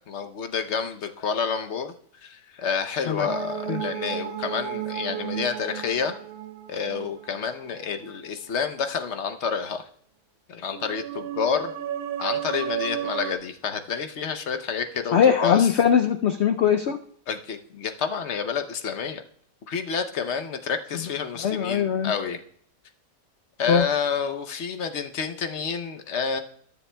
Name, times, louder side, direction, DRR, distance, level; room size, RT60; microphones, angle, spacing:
voice 1, 0.1-1.9 2.2-6.1 6.7-9.9 10.5-11.7 12.2-15.7 17.3-19.2 19.7-22.4 23.6-26.4, left 6 dB, 55° left, 7 dB, 0.9 m, -29 dB
sound 1, 3.3-8.1 10.6-13.3, right 10 dB, 65° right, 1.2 m, -33 dB
voice 2, 15.1-17.0 21.4-22.1 23.7-23.9, left 8 dB, 85° left, 7 dB, 0.6 m, -21 dB
20.5 x 7.0 x 2.2 m, 0.64 s
omnidirectional pair, 1.8 m